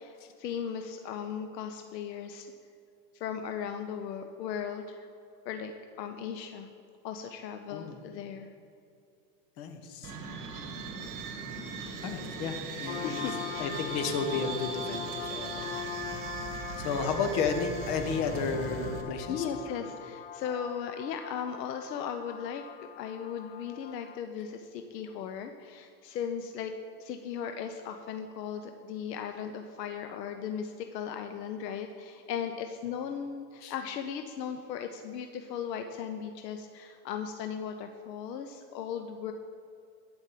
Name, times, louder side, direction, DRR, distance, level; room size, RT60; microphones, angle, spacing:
voice 1, 0.0-2.5 3.1-5.1 5.4-5.7 6.0-6.7 7.0-8.5 13.0-13.3 17.0-17.1 19.3-22.6 23.0-26.7 27.0-39.3, left 7 dB, 80° left, 6 dB, 0.9 m, -37 dB
voice 2, 9.6-10.1 12.0-13.3 13.6-15.7 16.0-16.3 16.8-19.4 19.8-19.9 33.6-33.7, left 5 dB, 50° left, 6 dB, 1.6 m, -33 dB
sound 1, 10.0-19.0, right 5 dB, 40° right, 1.8 m, -39 dB
sound 2, 12.9-24.2, left 9 dB, 20° left, 0.4 m, -42 dB
12.0 x 5.3 x 7.5 m, 2.5 s
hypercardioid pair, 105°, 49 cm